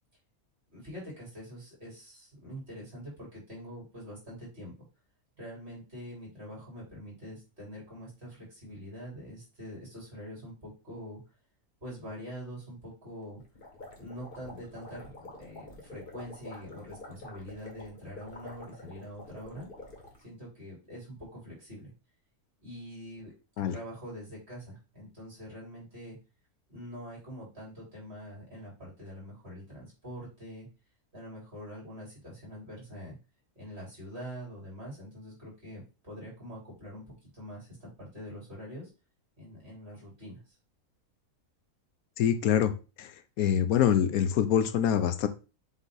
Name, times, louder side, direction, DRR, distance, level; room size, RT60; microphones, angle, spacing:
voice 1, 0.7-4.7 5.4-11.2 11.8-13.4 14.0-19.7 20.2-21.9 22.6-23.3 23.7-26.2 26.7-30.7 31.1-33.2 33.6-38.9 39.4-40.4, equal, 45° right, 4.2 m, -44 dB
sound 1, 13.4-20.2, left 2 dB, 35° left, 1.7 m, -48 dB
voice 2, 42.2-42.7 43.0-45.3, left 9 dB, 75° left, 1.1 m, -25 dB
7.3 x 3.3 x 3.9 m
omnidirectional pair, 1.5 m